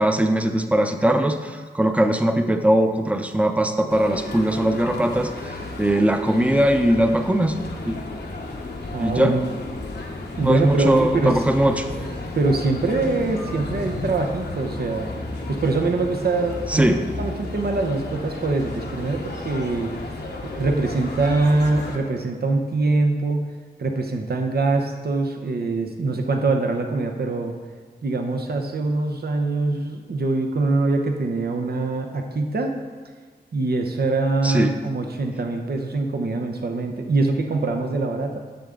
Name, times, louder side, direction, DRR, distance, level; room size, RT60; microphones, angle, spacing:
voice 1, 0.0-5.5 5.8-7.6 7.9-8.0 9.0-9.3 10.4-11.9 16.7-17.0 34.4-34.7, right 1 dB, 10° right, 6 dB, 0.7 m, -20 dB
sound 1, 3.9-22.0, left 2 dB, 80° left, 1.1 m, -33 dB
voice 2, 8.9-9.5 10.4-11.5 12.3-15.1 15.5-20.1 20.6-23.5 23.8-27.5 28.0-32.7 33.5-38.4, right 3 dB, 65° right, 4 dB, 0.8 m, -23 dB
10.5 x 6.8 x 3.8 m, 1.5 s
wide cardioid pair, 70°, 17 cm